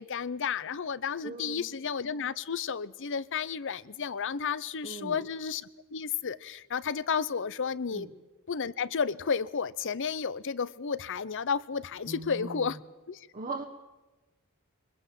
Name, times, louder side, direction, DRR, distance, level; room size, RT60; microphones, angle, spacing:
voice 1, 0.0-8.1 8.5-12.8 13.1-13.2, left 6 dB, 60° left, 0.7 m, -32 dB
voice 2, 1.2-1.7 4.8-5.2 7.9-8.1 12.1-12.8 13.3-13.6, right 2 dB, 40° right, 1.3 m, -39 dB
23.5 x 21.0 x 7.6 m
head